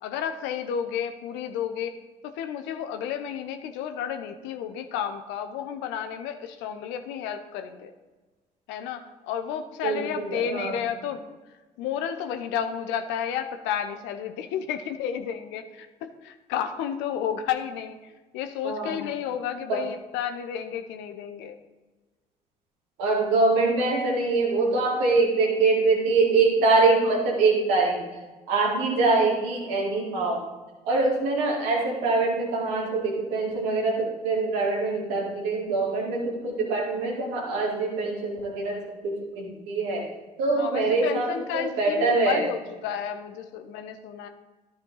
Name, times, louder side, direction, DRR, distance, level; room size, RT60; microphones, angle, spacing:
voice 1, 0.0-1.9 2.2-7.9 8.7-11.2 11.5-21.6 40.5-44.3, left 8 dB, 65° left, 8 dB, 0.8 m, -32 dB
voice 2, 9.8-10.8 18.6-19.0 19.7-19.8 23.0-28.0 28.5-30.4 30.8-40.1 40.4-42.4, right 3 dB, 70° right, -1 dB, 2.1 m, -24 dB
13.5 x 4.5 x 4.0 m, 1.2 s
figure-of-eight pair, 45°, 20 cm